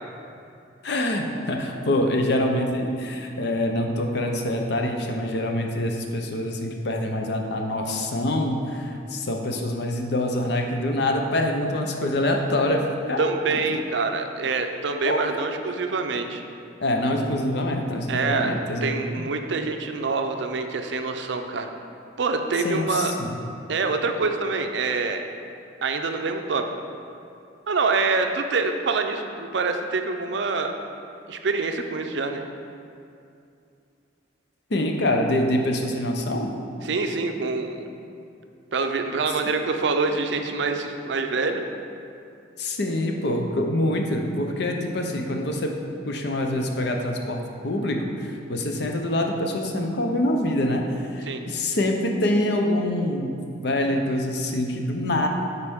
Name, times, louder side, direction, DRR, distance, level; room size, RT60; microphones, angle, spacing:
voice 1, 0.8-12.8 13.1-13.3 13.7-13.8 15.0-15.3 16.8-18.9 22.6-23.3 34.7-36.5 42.6-45.7 46.1-48.0 48.5-50.8 51.1-53.4 53.6-55.3, left 1 dB, 65° left, 2 dB, 0.7 m, -25 dB
voice 2, 13.2-16.4 18.1-18.5 18.8-21.7 22.2-23.1 23.7-25.2 25.8-26.7 27.7-30.8 31.3-32.4 36.8-37.8 38.7-41.6 51.3-51.4, right 4 dB, 70° right, 6 dB, 0.5 m, -25 dB
9.7 x 4.1 x 3.6 m, 2.5 s
head